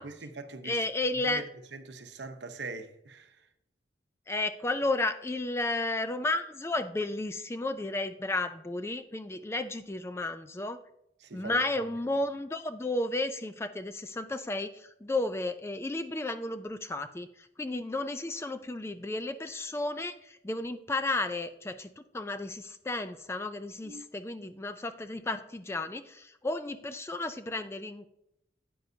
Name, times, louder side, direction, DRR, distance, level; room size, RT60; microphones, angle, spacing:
voice 1, 0.0-0.9 1.2-3.5 11.2-11.9 23.8-24.1, right 3 dB, 70° right, 0.8 m, -42 dB
voice 2, 0.6-1.4 4.3-10.8 11.3-28.1, left 2 dB, 15° left, 0.3 m, -33 dB
9.4 x 9.3 x 2.7 m
head